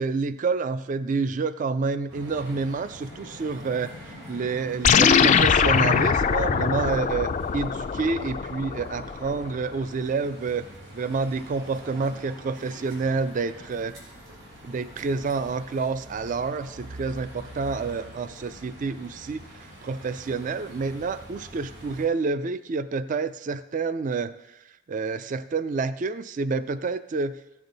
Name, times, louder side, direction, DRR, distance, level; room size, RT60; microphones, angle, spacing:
voice 1, 0.0-3.9 4.3-10.7 10.9-14.0 14.6-24.4 24.9-27.4, right 4 dB, 40° right, 14 dB, 0.3 m, -28 dB
sound 1, 2.1-22.1, equal, 90° right, 3.3 m, -45 dB
sound 2, 4.8-9.5, left 6 dB, 35° left, 0.3 m, -22 dB
15.0 x 7.0 x 3.9 m, 0.99 s
head